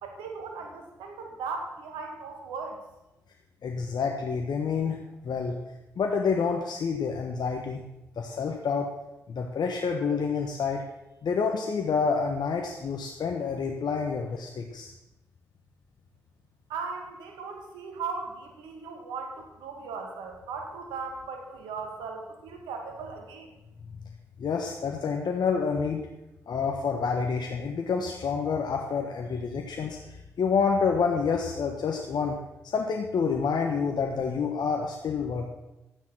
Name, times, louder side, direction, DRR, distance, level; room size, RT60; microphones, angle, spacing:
voice 1, 0.0-2.8 16.7-23.5, right 4 dB, 85° right, 3 dB, 1.9 m, -37 dB
voice 2, 3.6-5.0 5.2-5.6 6.0-7.8 8.2-8.9 9.3-10.8 11.2-14.9 24.4-26.1 26.5-32.4 32.7-35.5, left 5 dB, 65° left, 2 dB, 1.4 m, -28 dB
12.5 x 9.3 x 6.2 m, 0.96 s
hypercardioid pair, 40°, 8 cm